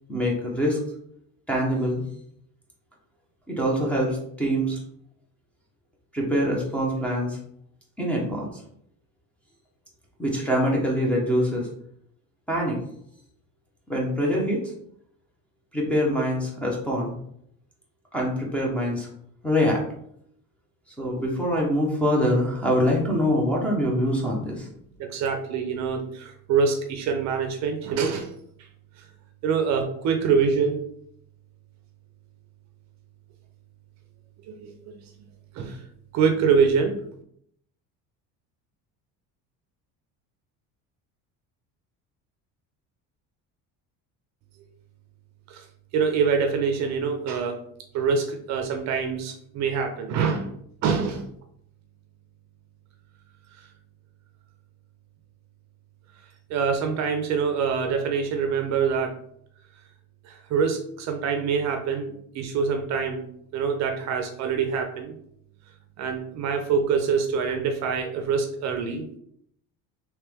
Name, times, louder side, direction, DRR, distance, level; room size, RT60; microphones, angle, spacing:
voice 1, 0.1-0.8 1.5-2.0 3.5-4.8 6.1-7.4 8.0-8.5 10.2-11.7 12.5-12.8 13.9-14.6 15.7-17.1 18.1-19.1 19.4-19.8 21.0-24.7, equal, 5° left, -2 dB, 0.7 m, -24 dB
voice 2, 25.0-28.3 29.4-30.8 34.5-34.7 35.5-35.8 36.1-36.9 45.5-45.6 45.9-47.6 47.9-50.5 50.8-51.3 56.5-59.1 60.2-63.2 63.5-65.1 66.0-69.0, right 6 dB, 50° right, 5 dB, 0.5 m, -25 dB
3.2 x 3.0 x 3.4 m, 0.70 s
cardioid pair, 155°, 36 cm